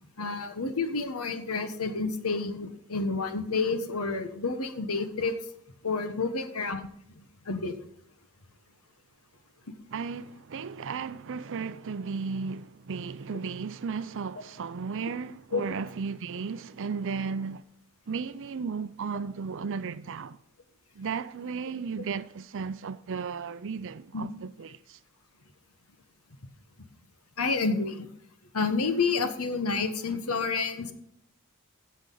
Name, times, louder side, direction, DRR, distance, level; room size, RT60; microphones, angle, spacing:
voice 1, 0.2-5.3 5.8-6.9 7.5-7.7 15.5-15.6 24.1-24.2 27.4-28.1 28.5-30.9, left 4 dB, 80° left, 1.3 m, -29 dB
voice 2, 9.9-17.6 18.1-20.4 20.9-25.0, right 5 dB, 60° right, 0.5 m, -35 dB
16.0 x 6.3 x 3.9 m
head